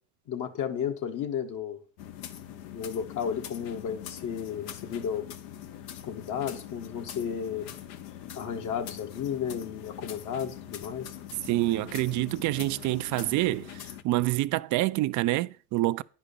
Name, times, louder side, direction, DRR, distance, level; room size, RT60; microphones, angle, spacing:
voice 1, 0.3-1.8 2.7-5.3 6.1-7.7 8.3-11.1, left 8 dB, 55° left, 1.6 m, -33 dB
sound 1, 2.0-14.0, left 10 dB, 75° left, 1.1 m, -43 dB
voice 2, 11.5-16.0, right 18 dB, 55° right, 0.5 m, -27 dB
10.0 x 5.2 x 6.9 m
supercardioid pair, 100°, 35 cm